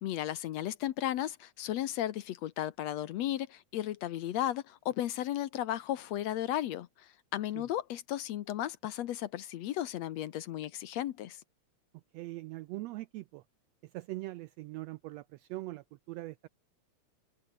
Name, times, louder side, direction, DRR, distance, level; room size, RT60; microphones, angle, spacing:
voice 1, 0.0-11.4, left 12 dB, 70° left, 1.9 m, -35 dB
voice 2, 12.1-13.4 13.8-16.5, right 18 dB, 80° right, 1.5 m, -42 dB
open air
omnidirectional pair, 3.5 m